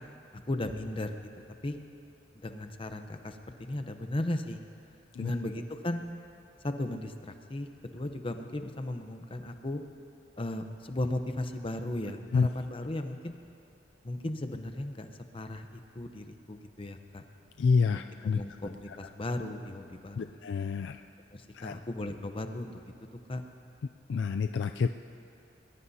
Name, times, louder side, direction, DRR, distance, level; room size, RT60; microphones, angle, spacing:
voice 1, 0.3-1.3 1.6-1.8 2.3-4.6 5.2-6.1 6.6-9.8 10.4-13.3 14.0-17.2 17.9-20.3 21.3-22.8 23.3-23.4, left 1 dB, 30° left, 7 dB, 0.8 m, -36 dB
voice 2, 17.6-18.4 20.2-21.0 21.5-21.7 24.1-24.9, left 5 dB, 70° left, 7 dB, 0.4 m, -27 dB
22.5 x 20.0 x 2.8 m, 2.5 s
head